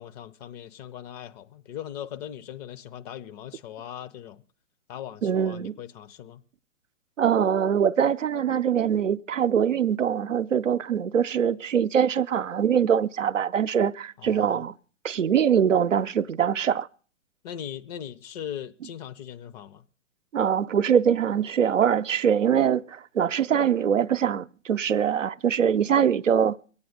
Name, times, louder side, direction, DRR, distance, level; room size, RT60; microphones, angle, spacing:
voice 1, 0.0-4.4 4.9-6.4 14.2-14.7 17.4-19.8, left 10 dB, 35° left, 0.8 m, -39 dB
voice 2, 5.2-5.8 7.2-14.8 15.0-16.9 20.3-26.6, right 8 dB, 90° right, 0.6 m, -23 dB
22.5 x 8.6 x 6.4 m
figure-of-eight pair, 120°, 37 cm